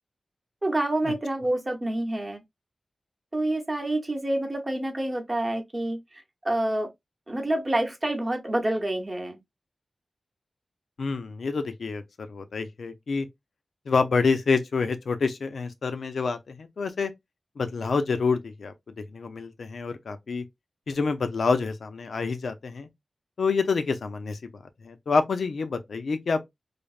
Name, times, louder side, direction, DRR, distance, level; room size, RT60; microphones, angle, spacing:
voice 1, 0.6-2.4 3.3-6.9 7.3-9.4, right 1 dB, 30° right, 0.8 m, -28 dB
voice 2, 11.0-12.0 12.3-13.3 13.9-17.1 17.6-20.4 20.9-22.9 23.4-26.5, left 4 dB, 85° left, 0.4 m, -27 dB
3.2 x 2.0 x 2.3 m
wide cardioid pair, 80°, 0 cm